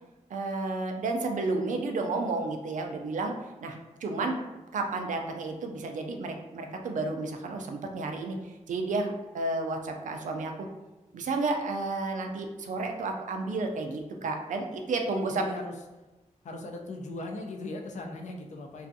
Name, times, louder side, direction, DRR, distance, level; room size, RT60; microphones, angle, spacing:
voice 1, 0.3-3.3 3.6-4.4 4.7-10.7 11.1-15.4, right 3 dB, 85° right, 3 dB, 0.4 m, -31 dB
voice 2, 15.3-15.7 16.4-18.9, left 2 dB, 70° left, 2 dB, 0.4 m, -38 dB
2.5 x 2.3 x 2.6 m, 1.1 s
wide cardioid pair, 90°, 13 cm